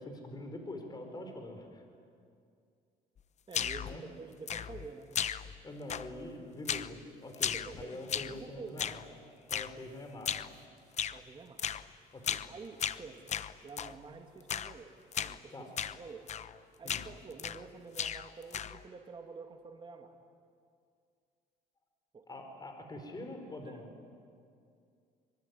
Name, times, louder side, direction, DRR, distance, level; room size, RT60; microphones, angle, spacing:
voice 1, 0.0-1.8 3.8-4.0 5.6-9.0 9.5-10.4 12.1-12.4 15.5-15.7 16.8-17.0 22.3-23.9, left 1 dB, 25° left, 4 dB, 4.6 m, -44 dB
sound 1, 3.5-4.0 4.5-4.9 5.1-5.6 5.9-6.3 6.7-7.0 7.3-8.4 8.8-9.1 9.5-9.7 10.2-10.5 11.0-11.2 11.6-11.9 12.2-12.5 12.8-14.0 14.5-14.8 15.1-15.4 15.8-16.0 16.3-16.6 16.9-17.7 17.9-18.8, left 8 dB, 45° left, 0.9 m, -36 dB
voice 2, 3.5-5.1 7.5-8.9 11.1-11.6 12.5-13.2 13.6-14.9 15.2-15.7 16.0-16.2 16.8-20.1 22.1-22.2 23.6-23.9, right 4 dB, 30° right, 3 dB, 2.3 m, -48 dB
24.5 x 23.0 x 9.7 m, 2.4 s
cardioid pair, 110°, 17 cm